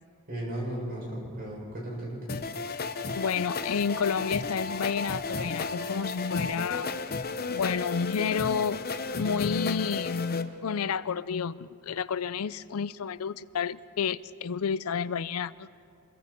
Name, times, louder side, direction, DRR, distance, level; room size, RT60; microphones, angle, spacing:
voice 1, 0.3-2.3, right 1 dB, 45° right, -4 dB, 7.3 m, -35 dB
sound 1, 2.3-10.4, left 4 dB, 45° left, 0.8 m, -33 dB
voice 2, 3.1-6.9 7.5-8.8 9.1-15.7, left 6 dB, 90° left, 17 dB, 0.5 m, -30 dB
27.5 x 22.0 x 4.5 m, 2.3 s
head